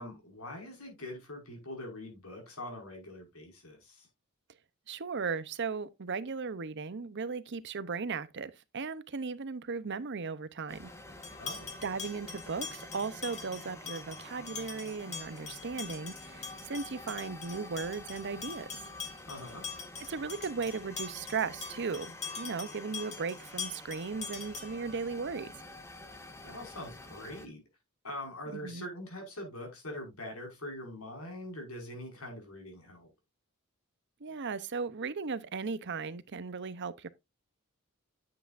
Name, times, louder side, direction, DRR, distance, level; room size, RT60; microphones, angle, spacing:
voice 1, 0.0-4.1 11.4-11.8 19.3-19.7 26.4-27.6 28.0-33.1, left 1 dB, 80° left, 5.5 m, -43 dB
voice 2, 4.9-10.9 11.8-18.7 20.1-25.5 28.5-28.8 34.2-37.1, right 5 dB, 55° right, 0.7 m, -37 dB
sound 1, 10.7-27.5, left 1 dB, 15° left, 1.2 m, -49 dB
sound 2, 11.2-24.9, left 6 dB, 35° left, 2.4 m, -44 dB
9.8 x 8.1 x 2.5 m
head